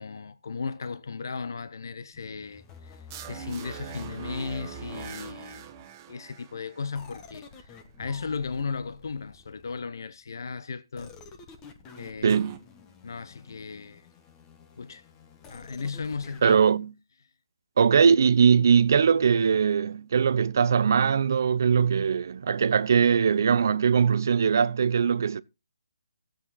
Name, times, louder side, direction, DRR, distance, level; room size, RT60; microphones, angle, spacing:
voice 1, 0.0-5.7 6.1-11.1 12.0-12.4 13.0-14.1 14.8-15.0 15.5-16.6, left 5 dB, 60° left, 0.8 m, -36 dB
sound 1, 2.1-5.8 6.9-10.0 10.9-16.6, left 3 dB, 15° left, 1.1 m, -49 dB
sound 2, 3.1-7.5 12.3-12.6, right 10 dB, 20° right, 1.0 m, -43 dB
voice 2, 12.2-12.6 16.4-16.9 17.8-25.4, right 6 dB, 50° right, 0.6 m, -21 dB
15.5 x 7.8 x 4.0 m
hypercardioid pair, 165°, 2 cm